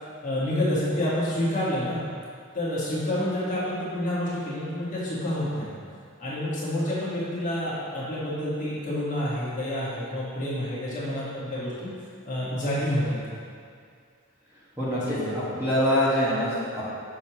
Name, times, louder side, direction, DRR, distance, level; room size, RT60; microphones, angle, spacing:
voice 1, 0.2-2.0 2.5-5.7 6.2-11.9 12.2-13.2 15.1-15.4, left 1 dB, 35° left, -9 dB, 1.6 m, -28 dB
voice 2, 14.8-16.8, equal, 10° right, -11 dB, 1.5 m, -25 dB
6.4 x 6.3 x 3.0 m, 2.2 s
head